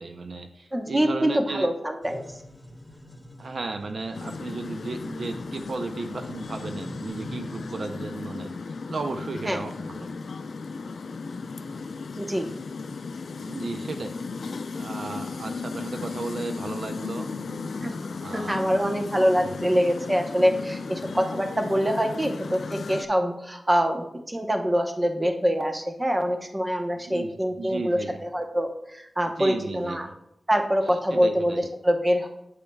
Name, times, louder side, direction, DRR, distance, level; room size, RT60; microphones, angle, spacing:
voice 1, 0.0-1.7 3.4-8.6 8.9-10.1 13.3-14.1 14.7-17.4 18.2-18.7 19.4-19.5 21.0-21.1 27.0-28.2 29.4-30.1 31.1-31.7, right 3 dB, 70° right, 6 dB, 0.5 m, -34 dB
voice 2, 0.7-2.2 9.4-9.6 12.2-12.5 17.8-18.0 18.3-30.1 30.5-31.5 31.8-32.3, equal, 20° right, 4 dB, 0.8 m, -25 dB
sound 1, 2.0-7.7, left 1 dB, 5° left, 1.9 m, -45 dB
sound 2, 4.1-23.0, left 4 dB, 80° left, 0.4 m, -35 dB
9.0 x 7.1 x 2.3 m, 0.80 s
wide cardioid pair, 100°, 0 cm